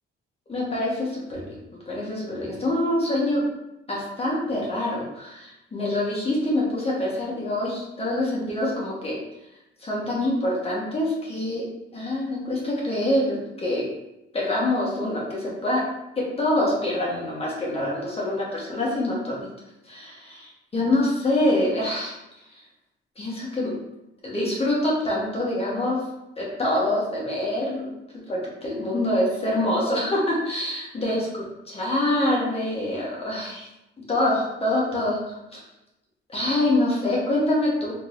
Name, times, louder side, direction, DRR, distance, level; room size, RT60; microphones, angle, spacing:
voice 1, 0.5-1.5 1.9-3.4 3.9-9.2 9.8-11.6 11.9-13.8 14.3-15.8 16.4-19.5 19.8-22.1 23.2-23.7 24.2-26.0 26.4-28.0 28.3-33.7 34.1-35.6 36.3-37.9, left 1 dB, 30° left, -4 dB, 1.2 m, -25 dB
3.7 x 2.9 x 2.5 m, 0.90 s
cardioid pair, 90°, 20 cm